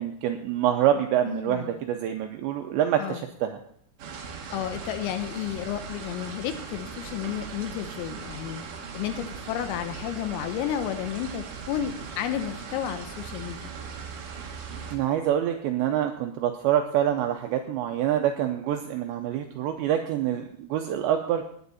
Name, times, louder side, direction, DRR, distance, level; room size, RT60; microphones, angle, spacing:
voice 1, 0.0-3.6 14.9-21.5, right 10 dB, 85° right, 5 dB, 2.5 m, -26 dB
voice 2, 1.3-1.8 3.0-3.3 4.5-8.6 8.9-13.7, left 10 dB, 85° left, 9 dB, 3.6 m, -32 dB
sound 1, 4.0-15.0, right 5 dB, 60° right, 2.4 m, -39 dB
18.0 x 9.5 x 4.2 m, 0.64 s
omnidirectional pair, 5.9 m